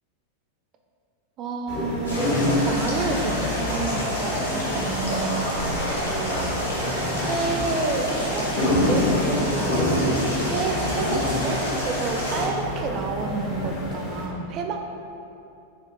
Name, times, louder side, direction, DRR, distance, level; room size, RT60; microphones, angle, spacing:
voice 1, 1.4-2.2 2.7-5.6 6.0-6.6 7.2-9.8 10.4-14.9, right 4 dB, 35° right, 2 dB, 0.3 m, -30 dB
sound 1, 1.7-14.3, left 1 dB, 40° left, 0.6 m, -27 dB
sound 2, 2.0-12.5, equal, 80° left, 0.7 m, -29 dB
4.3 x 2.4 x 2.7 m, 2.8 s
figure-of-eight pair, 90°, 0 cm